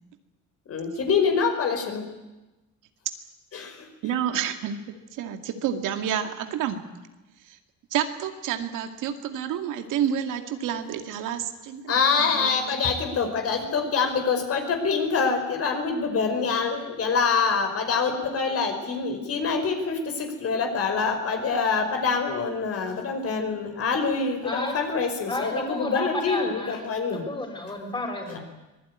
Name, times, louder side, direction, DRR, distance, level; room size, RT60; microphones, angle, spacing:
voice 1, 0.7-2.0 3.5-3.7 11.9-27.2, left 5 dB, 50° left, 5 dB, 5.0 m, -25 dB
voice 2, 4.0-4.8 5.1-6.8 7.9-12.8, right 9 dB, 85° right, 6 dB, 2.3 m, -29 dB
voice 3, 24.4-24.8 25.3-28.4, left 2 dB, 15° left, 3 dB, 6.2 m, -32 dB
24.5 x 20.0 x 9.6 m, 1.1 s
cardioid pair, 140°, 30 cm